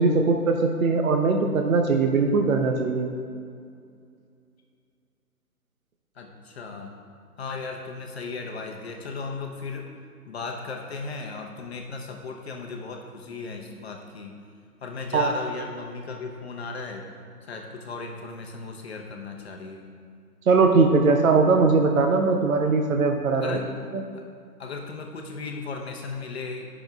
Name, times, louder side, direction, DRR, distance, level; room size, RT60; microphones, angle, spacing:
voice 1, 0.0-3.1 15.1-15.3 20.5-23.6 23.9-24.0, right 4 dB, 60° right, 4 dB, 0.9 m, -20 dB
voice 2, 6.2-6.9 7.4-9.9 10.3-14.4 14.8-17.1 17.4-19.9 23.3-23.7 24.1-24.2 24.6-26.7, left 4 dB, 45° left, 2 dB, 0.9 m, -36 dB
10.0 x 6.1 x 3.5 m, 2.3 s
hypercardioid pair, 145°, 46 cm